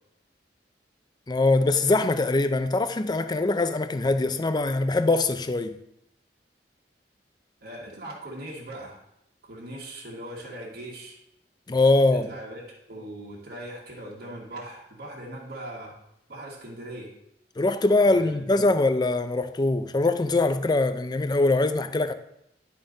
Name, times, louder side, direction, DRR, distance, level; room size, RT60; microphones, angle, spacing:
voice 1, 1.3-5.8 11.7-12.3 17.6-22.1, left 2 dB, 25° left, 0.4 m, -22 dB
voice 2, 7.6-9.0 9.5-11.2 12.1-15.9 16.3-17.1 18.0-18.6, right 1 dB, 60° right, 1.6 m, -40 dB
11.0 x 4.3 x 3.8 m
head